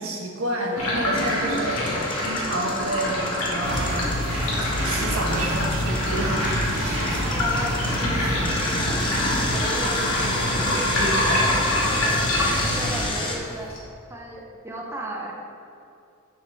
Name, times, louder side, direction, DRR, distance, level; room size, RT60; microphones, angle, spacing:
voice 1, 0.0-4.3 4.6-6.7 7.1-7.2, right 1 dB, 85° right, -1 dB, 1.2 m, -29 dB
sound 1, 0.7-13.8, left 1 dB, 80° left, 1.7 m, -27 dB
Engine, 1.2-8.0 8.4-13.4, left 2 dB, 25° left, 0.8 m, -32 dB
sound 2, 3.6-13.1, equal, 65° right, 1.7 m, -28 dB
voice 2, 7.1-13.8 14.1-15.3, right 1 dB, 10° right, -1 dB, 0.7 m, -36 dB
8.2 x 6.4 x 3.5 m, 2.6 s
head